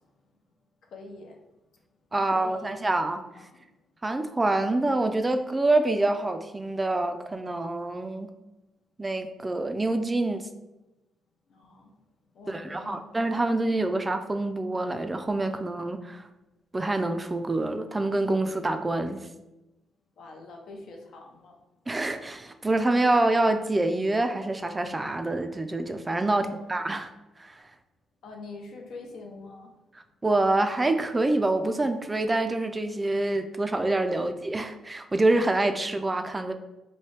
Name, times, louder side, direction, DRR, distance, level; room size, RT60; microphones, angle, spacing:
voice 1, 0.8-1.4 2.2-2.7 3.3-3.7 11.5-11.9 12.3-13.1 20.2-21.6 26.4-26.6 28.2-29.7 34.1-34.3, left 3 dB, 70° left, 2 dB, 0.6 m, -45 dB
voice 2, 2.1-3.2 4.0-8.3 9.0-10.5 12.5-16.3 16.7-19.2 21.9-27.1 27.4-27.6 30.2-36.5, right 2 dB, 20° right, 7 dB, 0.3 m, -26 dB
3.0 x 2.7 x 3.2 m, 0.98 s
cardioid pair, 80°, 0 cm